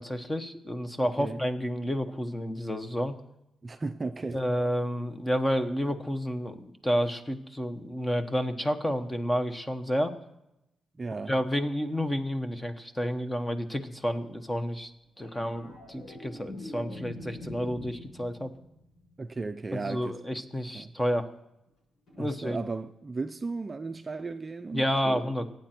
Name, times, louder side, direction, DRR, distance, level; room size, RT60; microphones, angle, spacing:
voice 1, 0.0-3.1 4.3-10.1 11.3-14.9 15.2-18.5 19.7-21.3 22.2-22.6 24.7-25.5, equal, 10° left, 1.1 m, -30 dB
voice 2, 1.0-1.4 3.6-4.4 11.0-11.3 19.2-20.2 20.7-20.9 22.2-25.2, right 3 dB, 25° right, 0.6 m, -35 dB
sound 1, 15.2-19.7 22.1-22.2, left 1 dB, 80° left, 7.2 m, -44 dB
22.5 x 9.2 x 4.5 m
cardioid pair, 120°, 0 cm